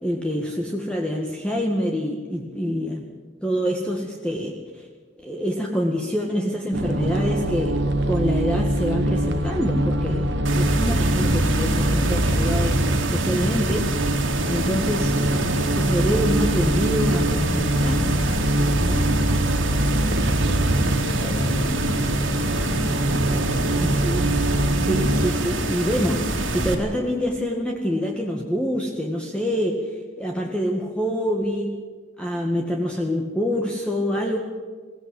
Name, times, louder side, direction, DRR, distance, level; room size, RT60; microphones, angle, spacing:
voice 1, 0.0-3.1 3.4-4.9 5.2-7.8 8.0-12.8 13.1-13.9 14.5-15.1 15.4-18.2 18.8-19.1 23.8-24.2 24.8-31.7 32.2-34.4, equal, 5° left, 0 dB, 1.8 m, -26 dB
sound 1, 6.7-25.3, right 1 dB, 60° right, 1.6 m, -24 dB
sound 2, 10.4-26.7, right 1 dB, 90° right, 3.2 m, -26 dB
voice 2, 20.4-22.5 23.2-24.0, equal, 50° left, -5 dB, 5.5 m, -37 dB
22.5 x 17.0 x 7.7 m, 1.4 s
head